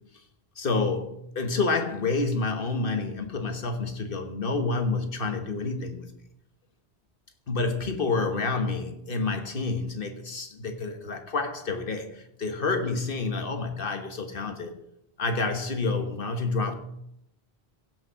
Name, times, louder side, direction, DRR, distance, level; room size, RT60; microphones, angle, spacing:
voice 1, 0.6-6.0 7.5-14.7 15.2-16.7, left 3 dB, 55° left, 1.5 m, -28 dB
15.5 x 6.3 x 5.7 m
omnidirectional pair, 1.1 m